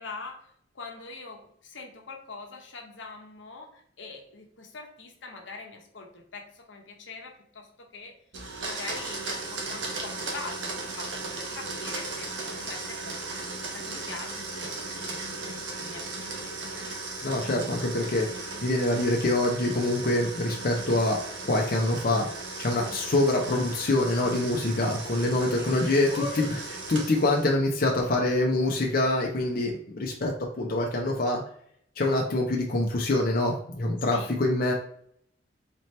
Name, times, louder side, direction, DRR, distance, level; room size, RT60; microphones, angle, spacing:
voice 1, 0.0-8.2 8.6-13.5 13.7-16.1 16.4-16.8 25.5-26.5 34.1-34.4, left 3 dB, 80° left, 2 dB, 0.9 m, -43 dB
Domestic sounds home sounds, 8.3-27.5, right 3 dB, 75° right, 1.0 m, -36 dB
voice 2, 17.2-21.2 21.4-22.3 22.6-26.1 26.9-31.4 32.0-34.7, left 2 dB, 50° left, -1 dB, 0.6 m, -25 dB
4.2 x 2.9 x 3.2 m, 0.66 s
head